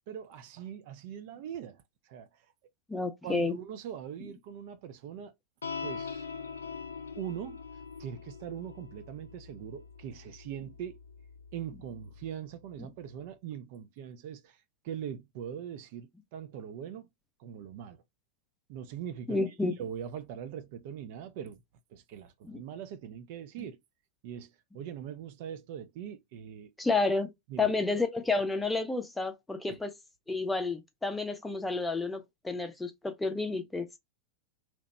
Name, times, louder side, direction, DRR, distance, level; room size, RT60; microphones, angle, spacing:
voice 1, 0.1-2.3 3.2-5.3 5.8-6.3 7.2-7.6 8.0-11.0 11.5-14.6 14.8-17.1 17.4-18.0 18.7-19.4 19.8-21.6 21.9-23.8 24.2-26.7 27.5-27.7 29.7-29.8, right 9 dB, 50° right, 0.4 m, -41 dB
voice 2, 2.9-3.6 19.3-19.8 22.4-22.6 23.6-23.7 26.8-27.3 27.6-30.0 30.3-33.9, left 3 dB, 10° left, 0.6 m, -30 dB
sound 1, 5.6-12.3, left 5 dB, 70° left, 0.3 m, -43 dB
2.9 x 2.1 x 4.1 m
figure-of-eight pair, 90°, 0 cm